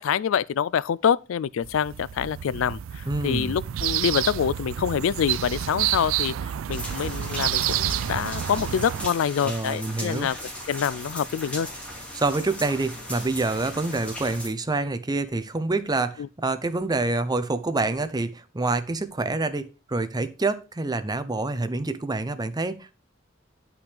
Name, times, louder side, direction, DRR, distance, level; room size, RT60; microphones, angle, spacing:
voice 1, 0.0-10.4 10.7-11.7 16.2-16.3, left 8 dB, 80° left, 0.4 m, -26 dB
sound 1, 1.6-9.1, right 11 dB, 85° right, 0.3 m, -29 dB
voice 2, 3.1-3.5 9.4-10.3 12.1-22.9, right 3 dB, 20° right, 0.7 m, -27 dB
sound 2, 6.7-14.5, equal, 5° left, 2.9 m, -37 dB
9.9 x 5.9 x 3.4 m
head